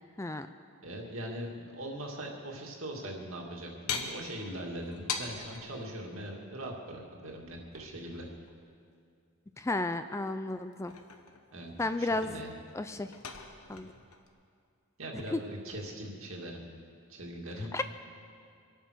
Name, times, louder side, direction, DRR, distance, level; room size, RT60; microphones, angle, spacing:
voice 1, 0.8-8.3 11.5-11.7 12.0-12.6 15.0-16.7 17.1-17.8, right 1 dB, 65° right, 0 dB, 2.2 m, -41 dB
sound 1, 3.9-5.7 7.5-8.5 10.5-11.7 12.1-14.3, left 6 dB, 85° left, 1.4 m, -41 dB
voice 2, 9.6-10.9 11.8-12.4 12.7-13.1 13.7-13.9 15.3-15.4 17.7-17.8, left 2 dB, 15° left, 10 dB, 0.4 m, -32 dB
24.0 x 9.1 x 6.4 m, 2.4 s
head